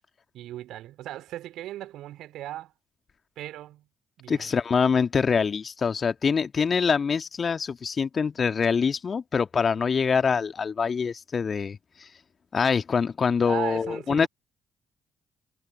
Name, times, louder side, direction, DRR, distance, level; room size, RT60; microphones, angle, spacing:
voice 1, 0.3-2.7 3.4-3.9 4.2-4.5 13.5-14.3, right 14 dB, 60° right, 3.7 m, -37 dB
voice 2, 4.3-12.1 12.5-14.3, left 6 dB, 40° left, 2.0 m, -25 dB
figure-of-eight pair, 45°, 0 cm